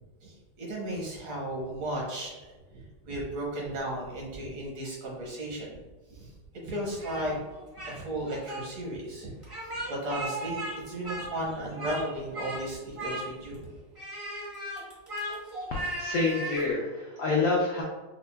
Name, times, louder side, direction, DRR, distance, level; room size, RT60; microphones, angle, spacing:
voice 1, 0.2-2.4 2.7-5.8 6.1-6.3 6.6-7.4 7.9-9.3 9.9-13.6, right 1 dB, 75° right, -4 dB, 1.9 m, -35 dB
Speech, 7.0-8.0 8.2-8.6 9.4-10.7 11.0-12.0 12.3-12.6 12.9-13.5 13.9-16.7, right 1 dB, 35° right, 0.5 m, -36 dB
voice 2, 15.7-17.8, left 3 dB, 80° left, -4 dB, 0.8 m, -27 dB
6.0 x 2.1 x 2.2 m, 1.2 s
omnidirectional pair, 2.2 m